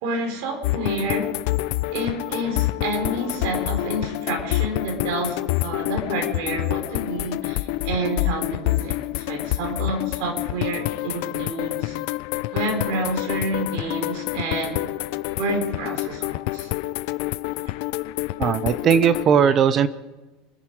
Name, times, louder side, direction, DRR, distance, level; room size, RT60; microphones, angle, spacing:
voice 1, 0.0-1.3 1.9-11.9 12.5-14.9 15.4-16.7, right 2 dB, 65° right, 4 dB, 4.4 m, -29 dB
sound 1, 0.6-19.2, left 18 dB, 65° left, 0.5 m, -27 dB
voice 2, 18.4-19.9, right 8 dB, 30° right, 14 dB, 0.7 m, -18 dB
27.0 x 10.5 x 4.8 m, 1.1 s
supercardioid pair, 150°, 0 cm